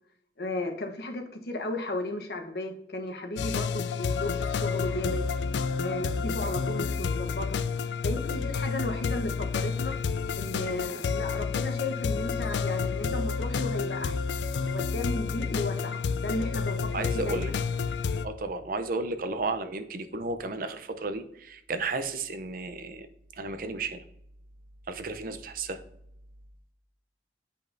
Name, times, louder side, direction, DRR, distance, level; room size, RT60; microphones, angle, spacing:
voice 1, 0.4-5.3 5.8-7.6 8.0-9.9 10.4-14.2 14.7-17.6, left 1 dB, 60° left, 4 dB, 1.0 m, -34 dB
sound 1, 3.4-18.2, left 5 dB, 80° left, 0.4 m, -30 dB
voice 2, 16.9-17.5 18.2-23.1 23.4-24.0 24.9-25.8, right 3 dB, 50° right, 9 dB, 0.6 m, -33 dB
8.7 x 5.3 x 2.6 m, 0.75 s
head